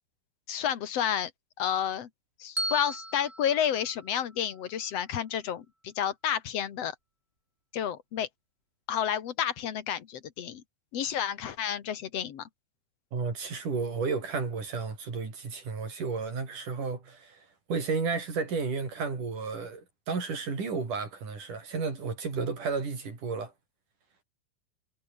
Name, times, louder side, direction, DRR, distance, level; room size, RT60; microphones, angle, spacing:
voice 1, 0.5-1.3 1.6-2.1 2.4-6.9 7.7-8.3 8.9-10.6 10.9-12.5, left 9 dB, 50° left, 2.2 m, -30 dB
Bell, 2.6-4.7, right 1 dB, 15° right, 7.5 m, -37 dB
voice 2, 13.1-23.5, right 4 dB, 55° right, 7.1 m, -32 dB
omnidirectional pair, 4.4 m